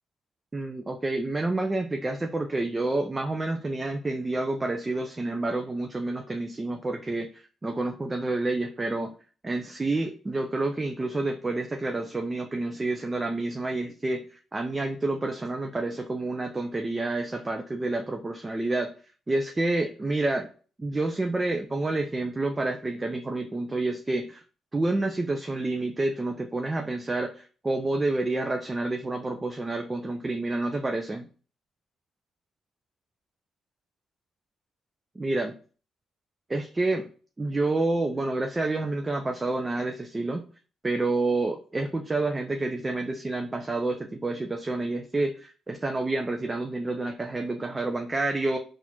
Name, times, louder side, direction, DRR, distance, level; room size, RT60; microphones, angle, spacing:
voice 1, 0.5-7.3 7.6-9.1 9.4-18.9 19.3-20.5 20.8-24.4 24.7-31.2 35.2-35.6 36.5-37.1 37.4-40.4 40.8-48.6, right 2 dB, 20° right, 4 dB, 0.4 m, -29 dB
4.1 x 2.4 x 2.9 m, 0.39 s
cardioid pair, 90°, 0 cm